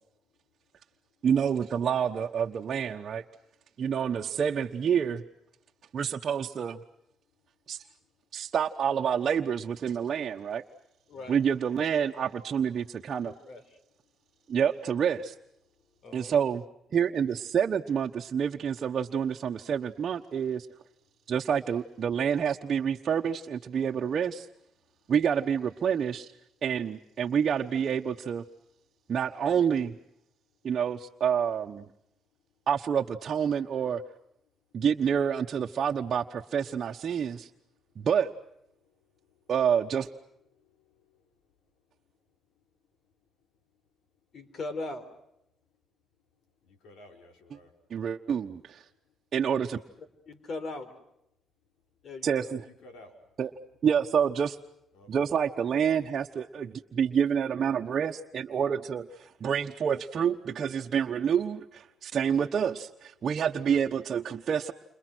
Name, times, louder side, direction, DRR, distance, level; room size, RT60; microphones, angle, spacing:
voice 1, 1.2-3.2 3.8-5.2 5.9-6.8 7.7-7.8 8.3-10.6 11.3-13.3 14.5-15.3 16.1-16.6 16.9-20.7 21.3-24.5 25.1-26.3 26.6-28.4 29.1-30.0 30.6-31.8 32.7-34.0 34.7-37.5 38.0-38.3 39.5-40.1 47.9-48.8 49.3-49.8 52.2-52.6 53.4-53.5 53.8-54.6 55.1-64.7, right 7 dB, 55° right, 0 dB, 1.2 m, -28 dB
voice 2, 13.2-13.6 16.0-16.3 44.3-45.0 50.3-50.9 52.0-52.5, left 3 dB, 55° left, 11 dB, 4.3 m, -38 dB
voice 3, 46.7-47.7 52.6-53.1 54.9-55.3, left 2 dB, 90° left, 3 dB, 5.6 m, -52 dB
29.5 x 27.0 x 6.3 m, 0.79 s
cardioid pair, 90°, 0 cm